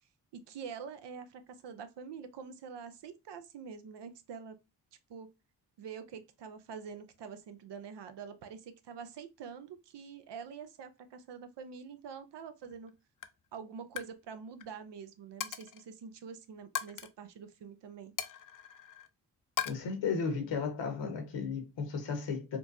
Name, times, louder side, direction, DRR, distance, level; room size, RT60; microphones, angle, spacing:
voice 1, 0.3-4.6 5.1-5.3 5.8-12.9 13.5-18.1, right 6 dB, 70° right, 0.7 m, -46 dB
Coin (dropping), 12.6-12.9 13.2-13.5 13.8-14.1 14.4-14.7 15.4-15.8 16.8-17.1 18.2-19.1 19.6-19.7, left 9 dB, 50° left, 0.6 m, -38 dB
voice 2, 19.6-22.6, left 5 dB, 80° left, 1.3 m, -34 dB
4.4 x 2.2 x 2.6 m
supercardioid pair, 55°, 43 cm